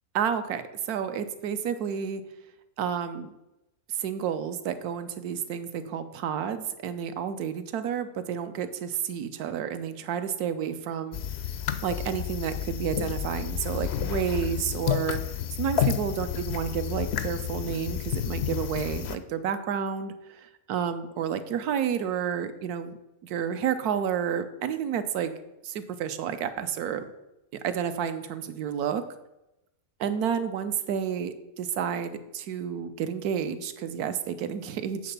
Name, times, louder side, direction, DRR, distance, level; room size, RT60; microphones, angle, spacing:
voice 1, 0.1-2.2 2.8-3.3 3.9-11.2 11.8-15.2 15.6-22.9 23.2-25.3 25.6-27.1 27.5-29.0 30.0-35.1, right 8 dB, 75° right, 10 dB, 1.2 m, -30 dB
sound 1, 11.1-19.2, left 10 dB, 75° left, 0.6 m, -30 dB
8.2 x 3.9 x 6.7 m, 0.92 s
omnidirectional pair, 1.7 m